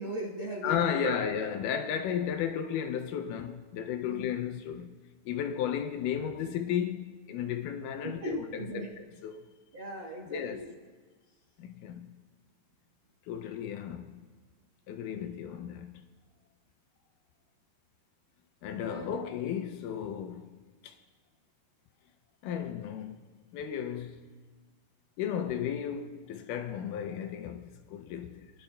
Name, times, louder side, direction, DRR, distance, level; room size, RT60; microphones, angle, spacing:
voice 1, 0.0-1.2 4.1-4.3 8.0-8.9 9.7-10.7 18.9-19.3, right 1 dB, 65° right, 1.2 m, -38 dB
voice 2, 0.6-5.0 5.3-8.9 9.2-9.5 10.3-10.6 11.6-12.2 13.3-14.3 14.9-16.1 18.6-20.5 20.8-21.0 22.4-23.2 23.5-24.3 25.2-28.5, left 9 dB, 80° left, 2.0 m, -34 dB
22.5 x 11.5 x 2.2 m
omnidirectional pair, 4.0 m